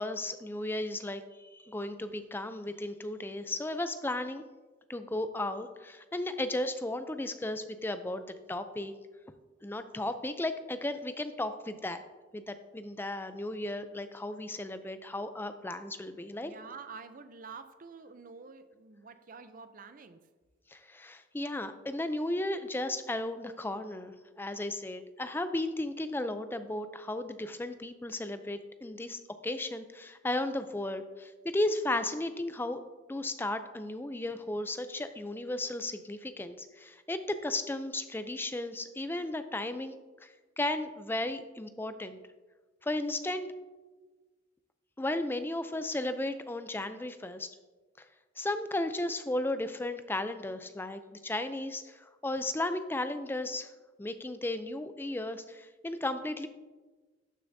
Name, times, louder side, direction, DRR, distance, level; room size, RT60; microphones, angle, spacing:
voice 1, 0.0-4.4 4.9-8.9 9.6-12.0 12.3-16.5 20.7-32.8 33.1-39.9 40.2-42.2 42.8-43.5 45.0-47.5 48.4-53.7 54.0-56.5, left 1 dB, 10° left, 10 dB, 0.4 m, -35 dB
voice 2, 16.4-20.2, right 5 dB, 45° right, 10 dB, 0.5 m, -48 dB
12.0 x 6.7 x 2.7 m, 1.3 s
head